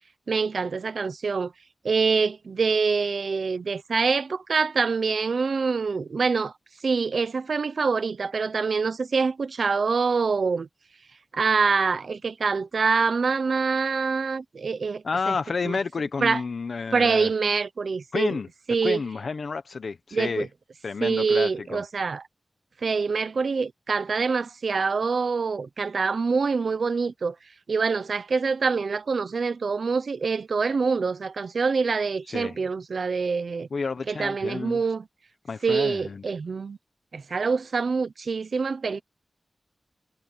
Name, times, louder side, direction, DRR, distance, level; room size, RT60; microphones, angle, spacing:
voice 1, 0.3-1.5 1.8-6.5 6.8-10.7 11.3-15.4 15.6-15.8 16.2-16.4 16.9-18.4 18.7-19.0 20.1-20.5 21.0-22.2 22.8-27.3 27.7-33.7 34.1-35.0 35.6-36.8 37.1-39.0, right 5 dB, 80° right, 0.8 m, -25 dB
voice 2, 15.0-17.3 18.1-18.5 18.8-20.5 20.8-21.8 32.3-32.6 33.7-34.8 35.5-36.2, left 4 dB, 75° left, 1.2 m, -30 dB
wide cardioid pair, 100°, 0 cm